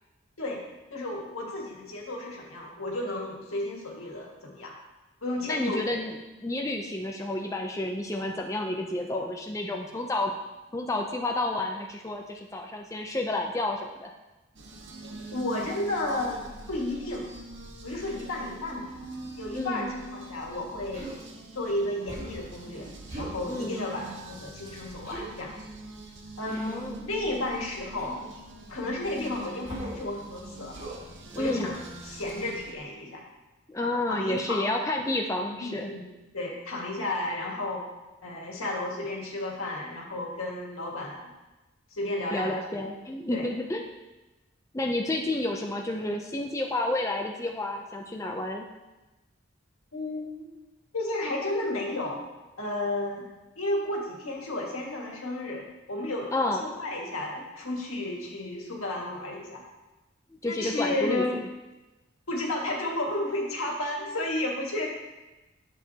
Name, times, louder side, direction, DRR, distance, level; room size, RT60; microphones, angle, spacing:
voice 1, 0.9-4.7 5.2-6.0 15.1-17.3 17.8-19.0 19.4-21.1 21.5-25.6 26.4-28.2 28.7-30.8 31.4-31.8 32.0-33.2 34.1-34.6 35.6-36.1 36.3-37.9 38.2-41.3 42.0-42.8 43.3-43.5 49.9-50.5 50.9-52.2 52.6-53.3 53.6-59.6 60.5-61.3 62.3-64.9, left 1 dB, 90° left, -2 dB, 1.9 m, -32 dB
voice 2, 5.4-6.2 6.4-10.3 10.7-14.1 19.5-19.9 23.5-23.8 26.6-27.0 31.3-31.7 33.7-35.9 42.3-43.8 44.7-48.7 56.3-56.6 60.4-61.5, left 2 dB, 15° left, 2 dB, 0.4 m, -30 dB
sound 1, 14.5-32.7, right 2 dB, 60° right, 0.9 m, -44 dB
Human voice, 20.9-21.2 22.1-22.5 23.1-23.4 25.0-25.3 26.5-26.8 28.0-28.3 29.6-30.0 30.7-31.0 31.3-31.6, right 1 dB, 30° right, 1.9 m, -39 dB
10.0 x 7.3 x 2.8 m, 1.1 s
head